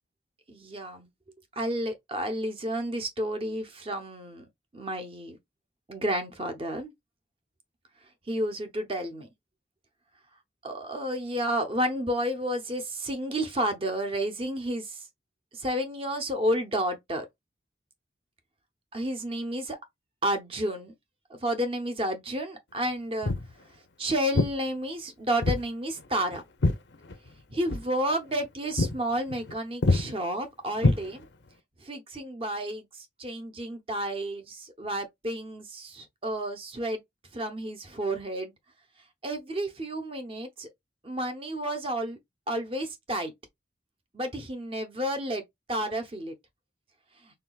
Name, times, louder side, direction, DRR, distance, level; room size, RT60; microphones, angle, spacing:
voice 1, 0.5-1.1 1.6-4.5 4.7-5.4 5.9-6.9 8.3-9.3 10.6-14.9 15.5-17.3 18.9-19.8 20.2-20.9 21.3-23.3 24.0-26.4 27.5-31.2 31.8-32.8 33.2-37.0 37.3-38.5 39.2-40.7 41.0-42.2 42.5-43.3 44.1-45.4 45.7-46.3, right 1 dB, 30° right, 0.8 m, -31 dB
Walk footsteps, 23.2-23.5 24.3-24.6 25.4-25.7 26.0-27.4 27.7-27.9 28.3-28.5 28.8-29.0 29.3-29.5 29.8-30.1 30.8-31.5, left 2 dB, 80° left, 0.7 m, -25 dB
4.5 x 3.9 x 2.3 m
head